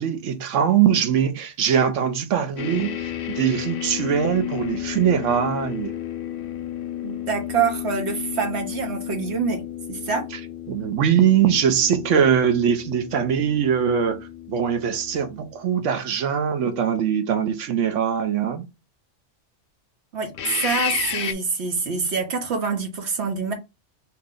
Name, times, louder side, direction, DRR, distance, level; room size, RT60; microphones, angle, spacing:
voice 1, 0.0-6.0 10.7-18.7, right 8 dB, 80° right, 1.1 m, -22 dB
sound 1, 2.6-15.7 20.3-21.3, left 11 dB, 60° left, 0.6 m, -32 dB
voice 2, 7.0-9.6 9.9-10.3 20.1-23.5, right 5 dB, 65° right, 1.2 m, -26 dB
3.0 x 2.9 x 3.7 m
omnidirectional pair, 1.3 m